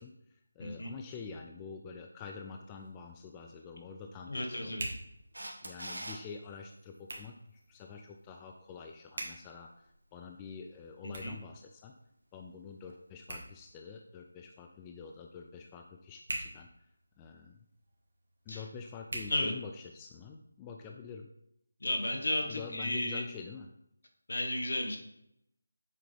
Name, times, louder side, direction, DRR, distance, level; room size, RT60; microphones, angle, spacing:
voice 1, 0.0-4.8 5.6-11.9 12.3-16.9 17.2-17.6 18.5-21.3 22.5-23.7, left 5 dB, 15° left, 3 dB, 0.4 m, -47 dB
voice 2, 0.6-0.9 4.3-4.8 11.2-11.3 18.5-18.6 19.3-19.5 21.8-23.2 24.3-25.0, left 1 dB, 65° left, 3 dB, 1.3 m, -33 dB
Hands, 2.5-20.2, right 1 dB, 60° right, 1.7 m, -48 dB
Camera, 5.3-6.2 12.9-13.0, right 1 dB, 80° right, 1.3 m, -41 dB
7.5 x 3.8 x 3.3 m, 0.77 s
figure-of-eight pair, 165°, 0 cm